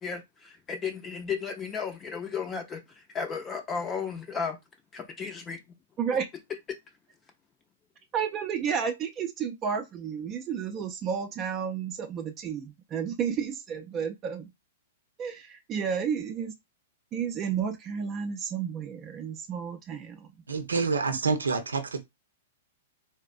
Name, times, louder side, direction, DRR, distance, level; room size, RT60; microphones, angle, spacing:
voice 1, 0.0-2.8 3.1-4.6 4.9-5.6, left 6 dB, 20° left, 0.6 m, -34 dB
voice 2, 6.0-6.3 8.1-14.5 15.2-16.6 17.1-20.3, right 7 dB, 30° right, 0.5 m, -31 dB
voice 3, 20.5-22.0, right 4 dB, 75° right, 0.6 m, -27 dB
3.9 x 2.1 x 2.5 m
figure-of-eight pair, 105°, 0 cm